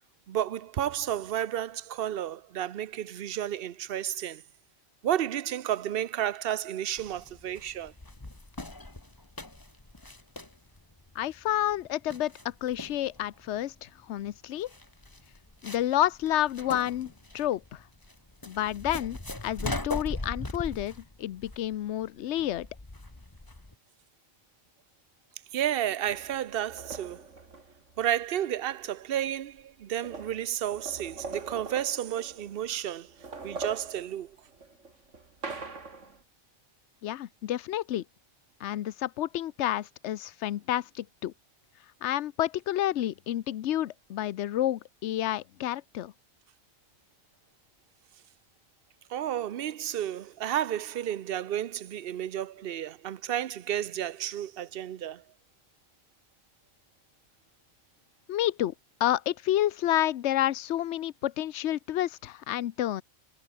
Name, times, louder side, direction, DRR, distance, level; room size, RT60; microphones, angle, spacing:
voice 1, 0.3-4.4 5.0-7.9 25.5-27.2 28.0-33.1 33.4-34.4 49.1-55.2, right 11 dB, 60° right, 0.8 m, -32 dB
sound 1, 7.0-23.7, left 2 dB, 20° left, 1.6 m, -40 dB
voice 2, 11.2-14.7 15.6-17.8 18.5-22.7 37.0-38.0 38.6-41.3 42.0-46.1 58.3-58.7 59.0-63.0, left 12 dB, 75° left, 1.0 m, -30 dB
sound 2, 26.1-28.3 29.2-29.3 29.6-32.7 33.1-36.2, right 3 dB, 85° right, 3.1 m, -42 dB
omnidirectional pair, 1.2 m